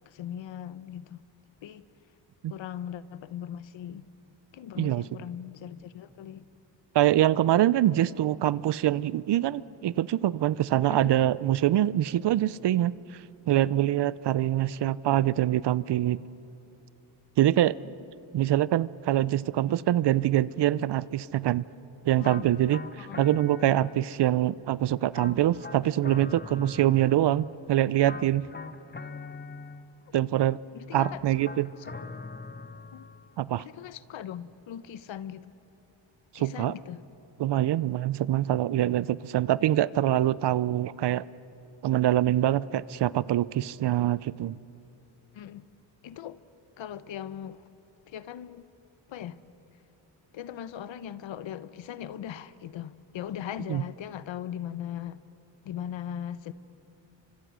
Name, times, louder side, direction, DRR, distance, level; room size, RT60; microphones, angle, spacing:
voice 1, 0.1-1.2 1.6-1.8 2.5-4.1 4.5-6.4 10.9-11.0 17.8-17.9 22.2-22.4 23.0-23.2 30.7-31.2 32.9-33.1 33.6-35.5 36.3-37.0 45.3-45.7 46.0-46.4 46.8-47.6 48.1-48.7 49.1-49.4 50.3-55.2 55.6-56.5, left 10 dB, 75° left, 15 dB, 0.9 m, -39 dB
voice 2, 6.9-12.9 13.5-16.2 17.4-17.8 18.3-21.6 22.0-28.5 30.1-30.6 30.9-31.7 33.4-33.6 36.3-36.7 37.4-41.2 41.8-44.6 53.7-53.8, right 13 dB, 60° right, 20 dB, 0.6 m, -24 dB
sound 1, 22.2-24.3 25.1-27.5 28.0-30.1 30.9-33.3, left 4 dB, 20° left, 0.9 m, -42 dB
30.0 x 25.0 x 6.3 m, 3.0 s
cardioid pair, 90°, 46 cm